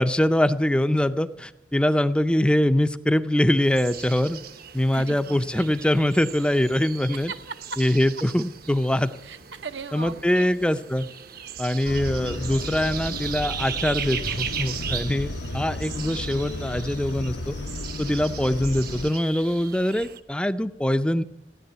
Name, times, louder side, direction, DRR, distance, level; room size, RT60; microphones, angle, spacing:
voice 1, 0.0-4.4 4.7-7.3 7.8-9.1 9.9-11.1 11.6-17.6 18.0-21.2, left 1 dB, 5° left, 11 dB, 0.5 m, -23 dB
sound 1, 3.6-20.2, right 8 dB, 55° right, 0.8 m, -38 dB
voice 2, 4.9-5.7 7.1-7.8 9.2-10.5, right 5 dB, 80° right, 10 dB, 0.9 m, -38 dB
sound 2, 11.8-19.1, left 2 dB, 75° left, 0.8 m, -33 dB
16.0 x 10.5 x 7.9 m, 0.86 s
head